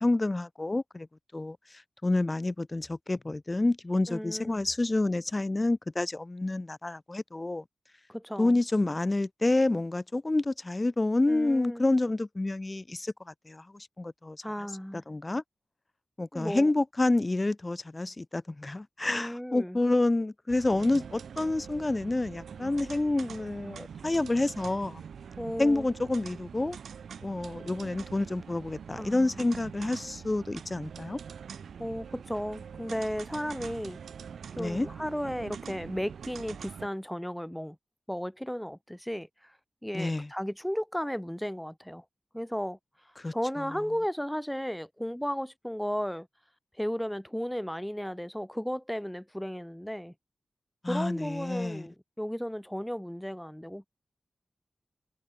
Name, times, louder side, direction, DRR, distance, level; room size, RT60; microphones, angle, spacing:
voice 1, 0.0-1.1 1.3-7.6 8.4-14.4 15.1-15.4 16.2-25.0 25.6-26.8 27.2-31.2 34.6-34.9 39.9-40.3 43.2-43.6 50.8-51.9, left 2 dB, 35° left, 0.4 m, -28 dB
voice 2, 4.1-4.6 8.1-8.5 11.3-11.8 14.4-15.0 16.3-16.7 19.1-19.8 25.4-25.9 28.9-29.4 31.8-34.0 34.6-37.8 38.1-39.5 39.8-42.0 42.3-42.8 43.3-46.3 46.8-50.1 50.9-53.9, equal, 5° left, 1.4 m, -34 dB
sound 1, 20.5-36.9, right 7 dB, 90° right, 2.7 m, -44 dB
cardioid pair, 40°, 0 cm